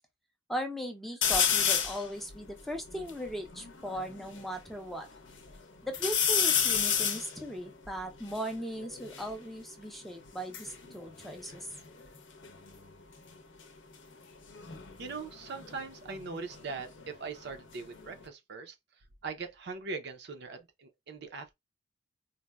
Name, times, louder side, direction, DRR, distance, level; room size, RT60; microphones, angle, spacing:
voice 1, 0.5-5.1 5.8-11.7, equal, ahead, 0.4 m, -38 dB
sound 1, 1.2-2.0 2.6-2.7 2.9-4.4 4.9-5.5 5.9-9.3 10.2-12.2 12.4-12.9 14.5-17.1 17.5-18.3, left 8 dB, 70° left, 0.7 m, -31 dB
voice 2, 15.0-18.8 19.2-21.6, right 4 dB, 60° right, 0.5 m, -41 dB
4.0 x 2.1 x 2.2 m
head